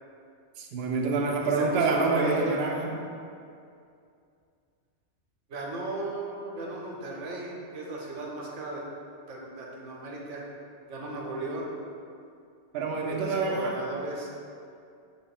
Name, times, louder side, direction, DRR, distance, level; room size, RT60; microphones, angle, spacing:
voice 1, 0.6-2.9 12.7-13.8, right 3 dB, 65° right, 0 dB, 0.7 m, -27 dB
voice 2, 1.4-2.6 5.5-8.8 9.3-10.4 10.9-11.7 13.1-14.3, right 2 dB, 90° right, -2 dB, 1.1 m, -36 dB
5.7 x 2.1 x 4.0 m, 2.4 s
omnidirectional pair, 1.2 m